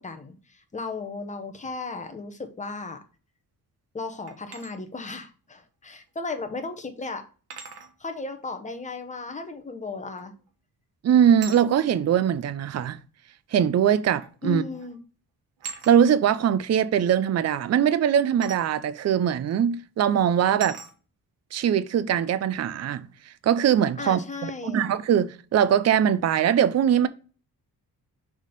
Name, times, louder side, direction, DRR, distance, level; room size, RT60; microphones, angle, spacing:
voice 1, 0.0-3.0 3.9-7.2 8.0-10.3 14.4-15.0 24.0-24.9, left 3 dB, 20° left, 0.9 m, -35 dB
sound 1, 4.3-4.7 6.2-6.3 7.5-7.9 10.2-10.5 11.4-11.7 12.9-13.0 14.2-14.4 14.7-15.0 15.6-16.0 18.4-18.7 19.5-19.6 20.6-20.9, right 5 dB, 80° right, 1.3 m, -40 dB
voice 2, 11.0-13.0 13.5-14.6 15.9-20.8 21.5-23.1 23.4-27.1, right 9 dB, 45° right, 0.5 m, -21 dB
6.5 x 3.6 x 5.0 m
wide cardioid pair, 150°, 38 cm